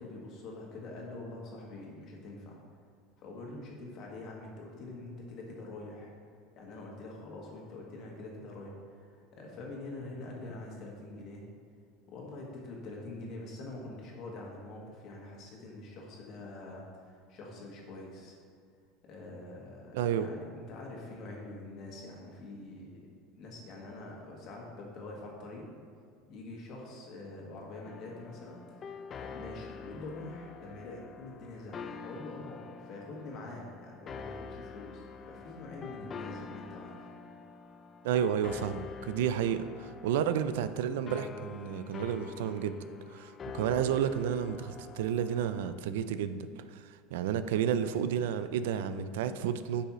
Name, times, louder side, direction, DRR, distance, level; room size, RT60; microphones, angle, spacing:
voice 1, 0.0-2.6 3.2-6.1 6.5-11.4 12.1-18.3 19.0-23.1 23.4-25.6 26.3-37.1, left 2 dB, 45° left, -1 dB, 1.7 m, -45 dB
voice 2, 19.9-20.3 38.0-42.8 43.1-49.8, right 9 dB, 90° right, 11 dB, 0.4 m, -31 dB
sound 1, 27.8-45.8, left 5 dB, 30° left, 0.4 m, -46 dB
9.8 x 5.5 x 3.1 m, 2.2 s
supercardioid pair, 140°, 0 cm